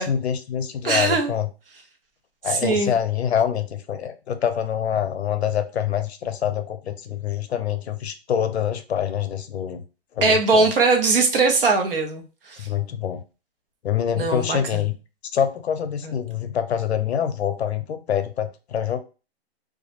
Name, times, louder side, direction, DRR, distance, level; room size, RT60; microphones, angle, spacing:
voice 1, 0.0-1.5 2.4-9.8 10.2-10.7 12.6-13.2 13.8-14.9 15.3-19.0, left 9 dB, 75° left, 9 dB, 0.5 m, -25 dB
voice 2, 0.8-1.3 2.5-2.9 10.2-12.7 14.2-14.8 16.0-16.1, right 3 dB, 60° right, 4 dB, 0.7 m, -21 dB
2.3 x 2.0 x 2.9 m, 0.32 s
hypercardioid pair, 180°, 32 cm